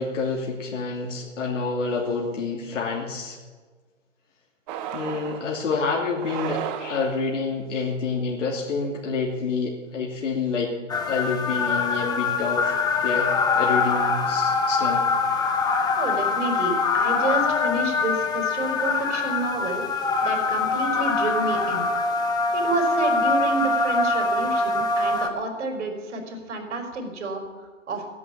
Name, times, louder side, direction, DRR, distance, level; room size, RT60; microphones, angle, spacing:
voice 1, 0.0-3.4 4.9-10.8 11.1-15.1, left 4 dB, 70° left, -2 dB, 3.0 m, -28 dB
sound 1, 4.7-5.5 6.1-7.3, right 9 dB, 35° right, 1.5 m, -33 dB
sound 2, 10.9-25.3, left 4 dB, 10° left, 1.0 m, -23 dB
voice 2, 16.0-19.8 20.2-21.9 22.5-28.1, right 3 dB, 65° right, 3 dB, 4.9 m, -29 dB
15.0 x 11.0 x 8.7 m, 1.4 s
hypercardioid pair, 130°, 38 cm